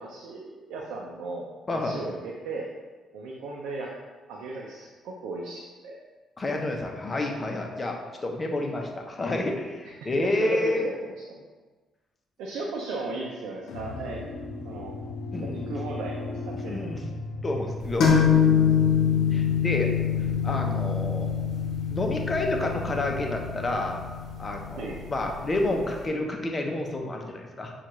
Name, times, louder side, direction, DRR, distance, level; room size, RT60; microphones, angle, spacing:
voice 1, 0.0-2.7 3.1-3.9 4.3-6.0 9.8-11.4 12.4-14.2 14.6-14.9 15.4-16.9 24.8-25.0, right 3 dB, 90° right, -2 dB, 0.5 m, -36 dB
voice 2, 1.7-2.0 6.4-10.8 13.9-14.0 15.3-15.7 16.6-17.2 17.4-18.1 19.3-19.9 20.4-21.3 21.9-24.0 24.4-27.7, left 2 dB, 30° left, 2 dB, 0.7 m, -29 dB
sound 1, 13.7-25.9, left 2 dB, 90° left, 0.5 m, -36 dB
sound 2, 18.0-25.5, left 8 dB, 70° left, 0.9 m, -25 dB
6.9 x 2.4 x 3.1 m, 1.3 s
cardioid pair, 90°, 0 cm